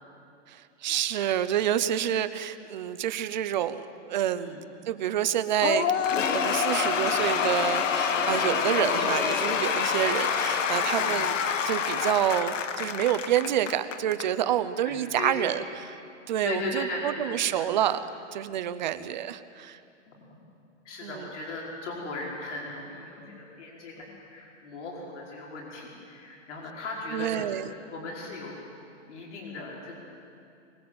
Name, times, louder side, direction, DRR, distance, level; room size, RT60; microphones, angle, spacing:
voice 1, 0.5-4.6 4.9-5.9 6.2-15.9 16.3-18.0 18.3-19.8 21.0-21.2 27.1-27.7, right 11 dB, 40° right, 12 dB, 0.8 m, -28 dB
Cheering / Applause / Crowd, 5.6-14.3, left 6 dB, 90° left, 1.6 m, -27 dB
voice 2, 14.8-15.6 16.4-17.7 20.1-20.2 20.8-27.5 27.9-28.6 29.1-29.9, left 2 dB, 70° left, -3 dB, 5.1 m, -37 dB
24.5 x 19.5 x 7.8 m, 2.5 s
hypercardioid pair, 175°, 36 cm